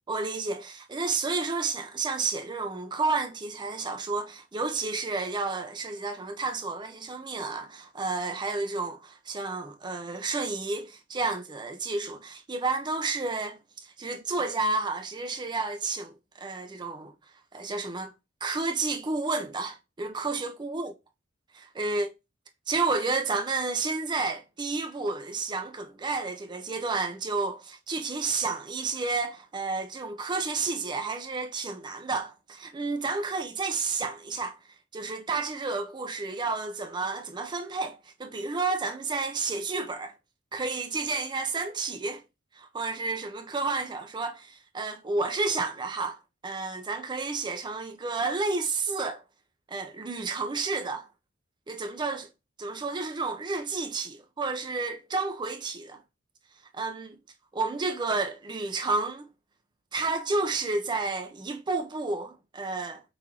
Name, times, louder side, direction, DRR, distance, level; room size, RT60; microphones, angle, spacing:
voice 1, 0.1-17.1 17.5-18.1 18.4-20.9 21.5-22.1 22.7-34.6 34.9-40.1 40.5-42.2 42.5-46.2 46.4-49.2 49.7-51.1 51.7-52.3 52.6-56.0 56.7-57.2 57.5-59.3 59.9-63.0, right 3 dB, 20° right, 0.4 m, -31 dB
5.5 x 2.5 x 2.8 m
head